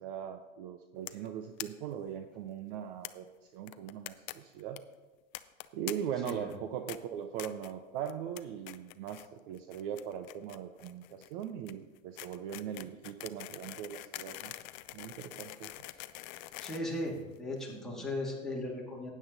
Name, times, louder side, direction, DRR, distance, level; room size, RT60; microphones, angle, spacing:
voice 1, 0.0-4.8 5.7-14.5 14.9-15.7 17.7-17.8, right 9 dB, 40° right, 8 dB, 0.7 m, -40 dB
sound 1, 1.1-1.3 1.6-1.7 1.9-2.0 2.2-2.3 3.0-3.1 3.7-4.3 4.6-4.8 5.3-5.9 6.2-6.6 6.9-7.0 7.4-7.7 8.1-8.4 8.7-9.3 9.5-17.6, left 18 dB, 35° left, 0.5 m, -44 dB
voice 2, 16.6-19.1, left 1 dB, ahead, -4 dB, 2.4 m, -37 dB
13.0 x 9.3 x 4.0 m, 1.3 s
hypercardioid pair, 120°, 40 cm